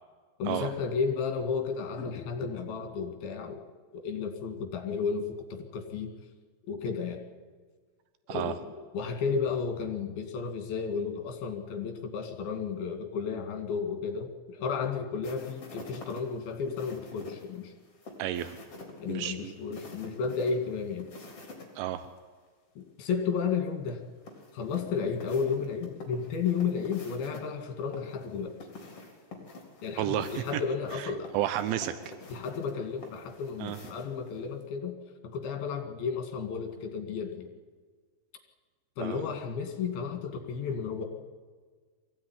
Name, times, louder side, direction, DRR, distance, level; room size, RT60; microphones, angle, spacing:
voice 1, 0.4-3.7 3.9-6.1 6.7-7.2 8.3-17.7 19.0-21.1 22.8-24.0 24.5-28.6 29.8-31.3 32.3-35.0 35.2-37.5 39.0-41.0, left 5 dB, 60° left, 5 dB, 3.9 m, -33 dB
sound 1, 15.2-21.7 22.0-22.1 24.3-27.4 27.9-34.4, left 2 dB, 35° left, 4.3 m, -47 dB
voice 2, 18.2-18.6 19.1-19.5 21.8-22.1 30.0-30.6 30.9-31.9 33.6-33.8 39.0-39.2, right 12 dB, 85° right, 11 dB, 3.2 m, -32 dB
23.0 x 16.0 x 9.8 m, 1.5 s
omnidirectional pair, 5.3 m